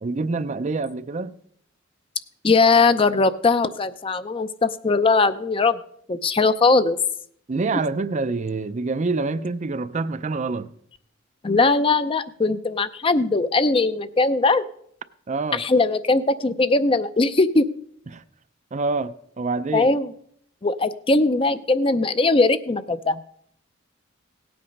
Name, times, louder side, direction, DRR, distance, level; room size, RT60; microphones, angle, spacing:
voice 1, 0.0-1.4 7.5-10.7 15.3-15.6 18.1-18.2 18.7-19.9, right 3 dB, 35° right, 0.5 m, -26 dB
voice 2, 2.4-5.8 6.1-7.0 11.4-14.6 15.5-17.6 19.7-20.1 20.6-23.2, left 3 dB, 25° left, 0.5 m, -20 dB
17.0 x 8.7 x 5.3 m
head